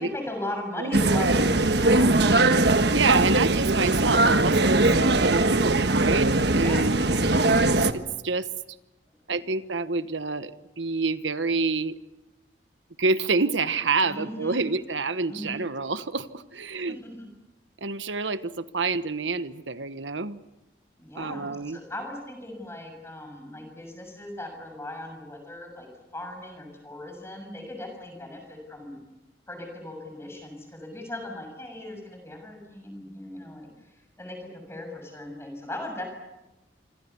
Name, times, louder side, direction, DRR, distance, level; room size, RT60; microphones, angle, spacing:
voice 1, 0.0-2.5 6.6-7.6 14.0-14.7 15.3-15.6 16.9-17.3 21.0-25.9 26.1-29.0 29.5-36.1, left 1 dB, 15° left, 3 dB, 6.6 m, -38 dB
sound 1, 0.9-7.9, right 2 dB, 65° right, 1.3 m, -21 dB
voice 2, 2.9-7.0 7.9-8.5 9.3-11.9 13.0-17.0 17.8-20.4 21.1-21.8, right 4 dB, 85° right, 12 dB, 1.2 m, -27 dB
27.0 x 26.0 x 7.1 m, 1.0 s
head